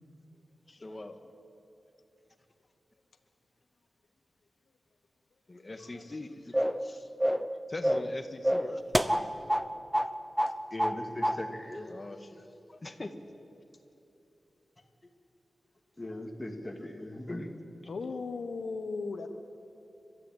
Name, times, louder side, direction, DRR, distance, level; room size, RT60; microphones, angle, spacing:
voice 1, 0.7-1.2 5.5-7.1 7.7-8.8 10.0-10.1 11.8-13.1, left 2 dB, 35° left, 7 dB, 1.8 m, -42 dB
sound 1, 6.5-6.8 7.2-7.5 7.8-8.1 8.4-9.7 9.9-10.1 10.4-11.0 11.2-11.4, equal, 10° right, 0.9 m, -27 dB
voice 2, 10.7-11.9 16.0-17.5, left 1 dB, 20° left, 3 dB, 2.6 m, -39 dB
voice 3, 17.9-19.3, left 4 dB, 80° left, 7 dB, 1.1 m, -36 dB
30.0 x 13.5 x 9.1 m, 3.0 s
wide cardioid pair, 80°, 0 cm